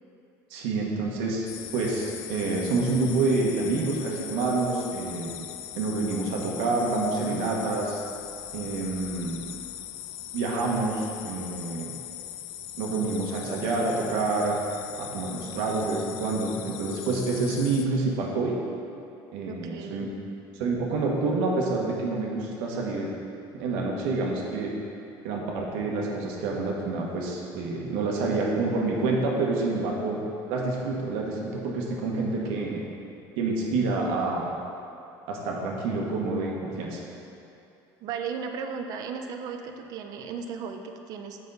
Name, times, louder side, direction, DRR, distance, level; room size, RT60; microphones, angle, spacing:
voice 1, 0.5-1.5 1.7-5.3 5.8-8.0 8.5-9.4 10.3-11.9 12.8-14.6 15.0-18.6 19.3-20.1 20.6-23.1 23.6-24.7 25.2-30.2 30.5-32.8 33.4-34.5 35.3-37.0, right 3 dB, 80° right, -1 dB, 1.2 m, -27 dB
sound 1, 1.5-17.8, left 11 dB, 80° left, 0.4 m, -40 dB
voice 2, 19.5-20.1 38.0-41.4, right 6 dB, 45° right, 6 dB, 0.5 m, -35 dB
7.7 x 5.5 x 4.0 m, 2.7 s
cardioid pair, 175°, 9 cm